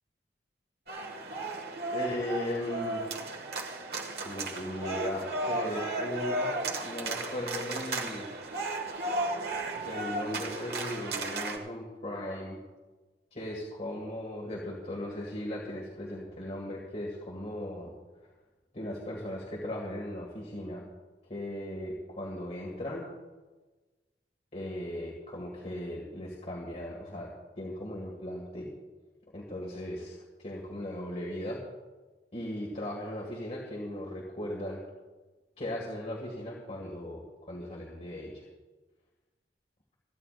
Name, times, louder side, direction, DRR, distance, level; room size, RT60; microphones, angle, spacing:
sound 1, 0.9-11.6, right 2 dB, 60° right, 1.5 m, -34 dB
voice 1, 1.9-3.1 4.1-6.6 6.8-8.3 9.8-12.6 13.3-17.9 18.7-20.9 21.3-23.1 24.5-28.7 29.3-31.6 32.3-34.8 35.6-38.4, left 1 dB, 40° left, -3 dB, 2.0 m, -37 dB
27.0 x 10.0 x 2.5 m, 1.2 s
head